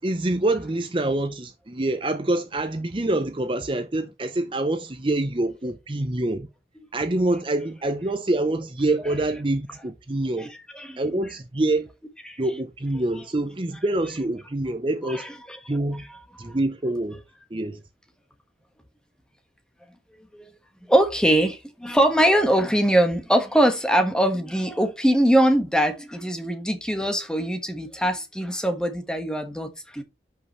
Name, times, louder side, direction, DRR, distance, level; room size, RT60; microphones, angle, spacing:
voice 1, 0.0-6.5 6.9-10.5 11.0-11.9 12.4-15.3 15.7-16.0 16.4-17.2 17.5-17.8, right 2 dB, 30° right, 0.6 m, -26 dB
voice 2, 10.4-11.0 12.3-12.4 15.0-15.6 15.9-16.5 20.3-20.4 20.9-30.0, right 1 dB, 5° left, 1.4 m, -22 dB
11.0 x 5.5 x 3.1 m
head